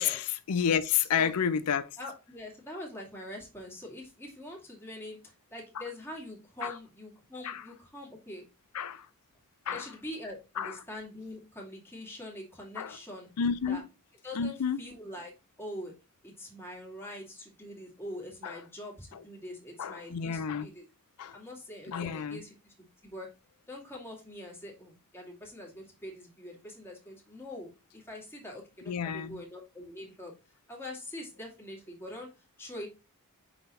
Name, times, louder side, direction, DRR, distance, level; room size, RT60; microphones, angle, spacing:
voice 1, 0.0-1.9 6.6-6.8 7.4-7.6 8.7-9.1 9.7-9.9 10.6-10.8 12.8-13.0 13.4-13.9 14.3-14.8 18.4-18.6 19.1-19.2 19.8-20.7 21.2-21.4 21.9-22.4 28.9-29.4, left 7 dB, 85° left, 0.5 m, -30 dB
voice 2, 2.0-8.4 9.7-13.3 13.7-13.8 14.2-15.3 15.6-15.9 16.2-20.8 21.3-23.3 23.7-30.3 30.7-32.3 32.6-32.9, left 1 dB, 10° left, 2.3 m, -44 dB
6.0 x 4.0 x 4.1 m
head